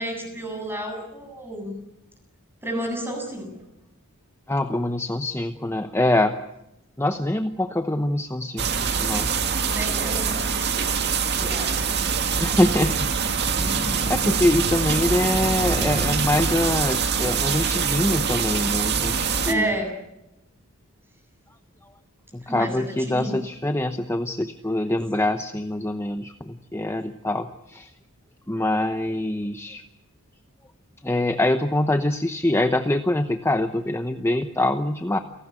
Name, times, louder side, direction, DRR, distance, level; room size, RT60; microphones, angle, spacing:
voice 1, 0.0-1.7 2.6-3.5 9.6-10.9 11.4-11.9 19.5-19.9 22.4-23.3, right 1 dB, 10° right, 3 dB, 7.7 m, -31 dB
voice 2, 4.5-6.4 7.0-9.3 12.4-13.1 13.6-19.7 22.3-27.9 28.5-29.8 31.0-35.2, left 1 dB, 10° left, 8 dB, 0.9 m, -24 dB
sound 1, 8.6-19.5, right 6 dB, 50° right, 2.1 m, -24 dB
29.0 x 18.5 x 8.3 m, 0.89 s
head